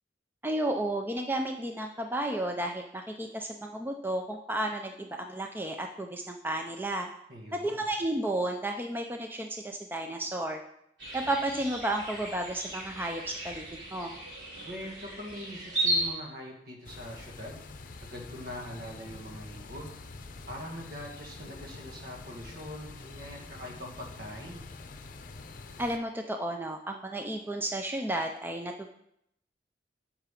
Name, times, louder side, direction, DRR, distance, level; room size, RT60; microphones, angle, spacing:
voice 1, 0.4-7.1 7.5-10.6 11.1-13.6 13.9-14.1 25.8-28.9, right 1 dB, 10° right, 3 dB, 0.6 m, -32 dB
voice 2, 7.3-7.8 14.6-17.6 18.0-20.0 20.5-24.7, equal, 60° right, 0 dB, 2.1 m, -43 dB
sound 1, 11.0-16.1, right 1 dB, 90° right, 4.1 m, -35 dB
sound 2, 16.8-26.0, left 3 dB, 50° left, 0.7 m, -46 dB
8.6 x 6.0 x 5.8 m, 0.75 s
head